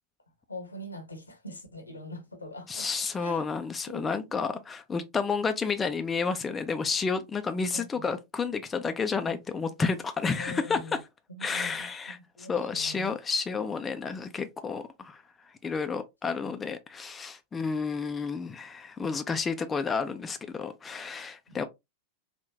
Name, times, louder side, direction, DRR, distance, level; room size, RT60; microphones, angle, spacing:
voice 1, 0.5-2.9 3.2-3.5 3.9-4.1 7.7-8.1 10.4-11.0 11.3-13.2 21.5-21.6, left 1 dB, 80° left, 0.8 m, -43 dB
voice 2, 2.7-10.8 11.4-15.2 15.6-21.6, left 5 dB, 15° left, 0.3 m, -31 dB
3.6 x 2.1 x 2.6 m
figure-of-eight pair, 90°, 0 cm